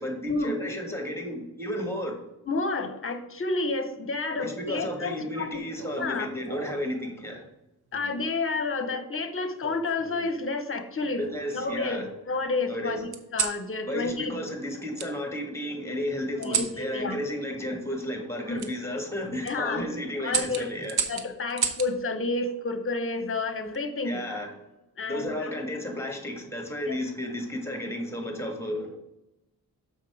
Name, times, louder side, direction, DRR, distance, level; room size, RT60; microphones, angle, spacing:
voice 1, 0.0-2.1 4.4-7.5 11.2-12.0 12.7-13.0 13.9-20.9 24.0-24.5 25.0-28.9, left 1 dB, 5° left, 3 dB, 1.6 m, -33 dB
voice 2, 2.5-5.6 6.0-6.3 7.9-11.2 11.5-14.4 16.4-17.2 18.5-18.7 19.4-19.9 20.2-20.7 21.1-24.2 25.0-25.5 26.9-27.0, left 3 dB, 35° left, 9 dB, 0.9 m, -30 dB
sound 1, 5.8-6.9 7.9-8.3 9.6-10.4 11.0-11.9 13.1-13.6 15.0-15.1 16.4-16.8 18.6-18.7 19.3-19.5 20.3-21.9 23.4-23.8, right 7 dB, 85° right, 0.9 m, -33 dB
6.7 x 5.5 x 4.7 m, 0.91 s
wide cardioid pair, 115°, 38 cm